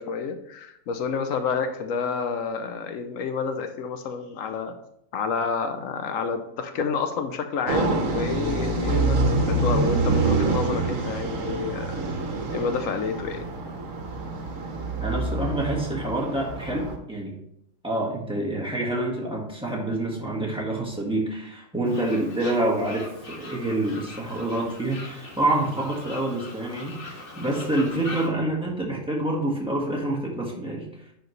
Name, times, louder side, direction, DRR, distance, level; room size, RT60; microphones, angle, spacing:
voice 1, 0.0-4.7 5.1-12.0 12.5-13.4, left 5 dB, 90° left, 8 dB, 1.2 m, -29 dB
sound 1, 7.7-17.0, right 3 dB, 75° right, 1.4 m, -26 dB
voice 2, 15.0-17.3 17.8-30.9, right 1 dB, 5° right, -3 dB, 1.8 m, -27 dB
Fowl, 21.8-28.3, left 2 dB, 45° left, 1.6 m, -41 dB
10.5 x 4.8 x 3.2 m, 0.76 s
omnidirectional pair, 1.3 m